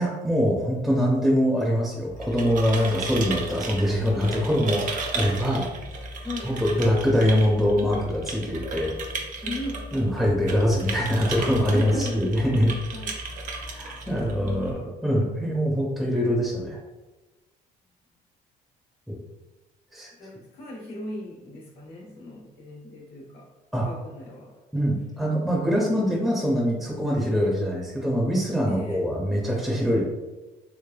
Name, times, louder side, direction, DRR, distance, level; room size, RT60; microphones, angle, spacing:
voice 1, 0.0-5.7 6.4-9.2 9.9-12.7 13.7-16.8 19.1-19.2 19.9-20.1 23.7-23.9 24.7-30.0, equal, ahead, -4 dB, 0.5 m, -24 dB
sound 1, 2.0-14.7, right 3 dB, 50° right, 0.6 m, -35 dB
voice 2, 4.2-4.6 6.2-6.6 9.4-9.9 11.7-12.3 12.9-13.1 14.0-14.8 20.1-23.5 23.8-24.5 28.7-29.0, left 1 dB, 75° left, -3 dB, 1.3 m, -37 dB
3.3 x 3.0 x 2.2 m, 1.1 s
cardioid pair, 110°, 17 cm